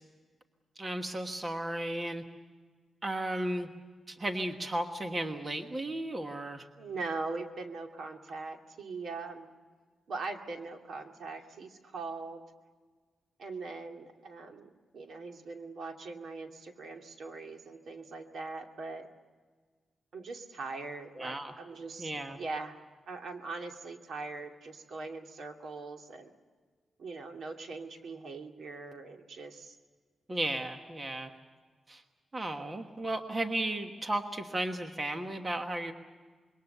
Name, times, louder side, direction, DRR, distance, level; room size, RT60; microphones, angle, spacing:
voice 1, 0.8-2.2 3.0-3.7 4.1-6.7 21.2-21.5 22.0-22.4 30.3-31.3 31.9-32.0 32.3-35.9, right 1 dB, 25° right, 5 dB, 1.3 m, -34 dB
voice 2, 6.8-9.5 10.1-12.4 13.4-19.1 20.1-22.8 23.1-26.3 27.0-29.8, right 3 dB, 65° right, 3 dB, 2.4 m, -41 dB
26.5 x 22.5 x 6.9 m, 1.5 s
wide cardioid pair, 150°, 0 cm